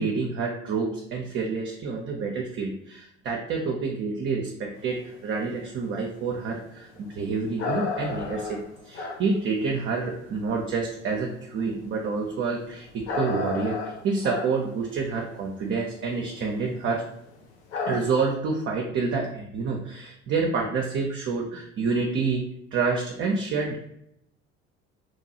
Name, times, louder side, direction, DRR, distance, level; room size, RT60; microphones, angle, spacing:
voice 1, 0.0-17.1 17.9-23.8, right 4 dB, 35° right, 0 dB, 0.5 m, -28 dB
sound 1, 4.8-10.8 11.3-16.6 16.9-17.0 17.3-17.4 17.7-18.3, left 4 dB, 70° left, 0.6 m, -33 dB
2.9 x 2.2 x 2.7 m, 0.74 s
figure-of-eight pair, 50°, 35 cm